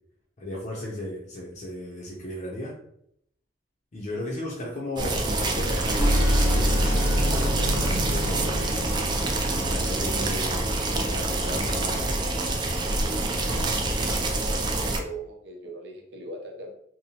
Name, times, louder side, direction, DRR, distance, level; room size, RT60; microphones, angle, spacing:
voice 1, 0.4-2.8 3.9-8.7 9.5-12.2, left 1 dB, 45° left, -5 dB, 0.5 m, -35 dB
sound 1, 5.0-15.0, right 2 dB, 25° right, 0.3 m, -27 dB
sound 2, 6.0-10.2, equal, 75° left, 0.8 m, -25 dB
voice 2, 14.7-16.7, right 2 dB, 80° right, 2 dB, 0.6 m, -39 dB
2.8 x 2.0 x 2.8 m, 0.71 s
head